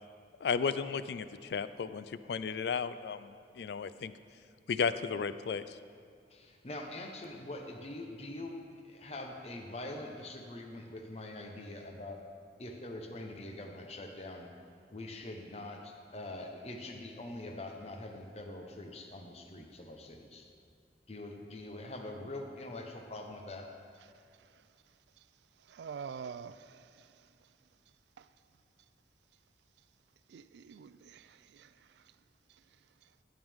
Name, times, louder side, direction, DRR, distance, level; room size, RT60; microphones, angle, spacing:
voice 1, 0.4-4.1 4.7-5.8, left 6 dB, 65° left, 0.3 m, -34 dB
voice 2, 6.3-12.2 12.6-14.5 14.9-20.5 21.1-23.7, left 1 dB, 35° left, 0.9 m, -44 dB
voice 3, 25.7-27.1 28.2-28.3 30.3-31.7, right 6 dB, 75° right, 0.3 m, -46 dB
12.0 x 8.8 x 3.6 m
head